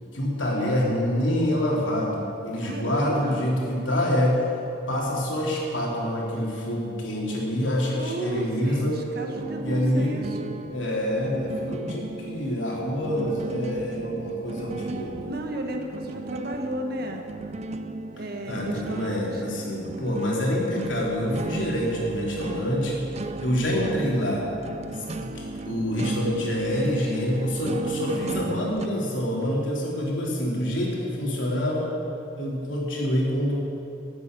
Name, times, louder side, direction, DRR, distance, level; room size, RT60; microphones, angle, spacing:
voice 1, 0.1-4.4 4.9-9.0 9.6-10.3 10.7-15.2 18.5-23.1 23.4-24.4 24.9-31.9 32.4-33.6, equal, 80° left, -3 dB, 3.3 m, -26 dB
voice 2, 2.6-3.5 7.9-10.6 15.2-17.3 18.1-19.6, right 1 dB, 55° right, 3 dB, 1.4 m, -34 dB
sound 1, 9.3-28.9, right 3 dB, 35° right, 0.5 m, -36 dB
13.0 x 8.0 x 8.8 m, 2.8 s
head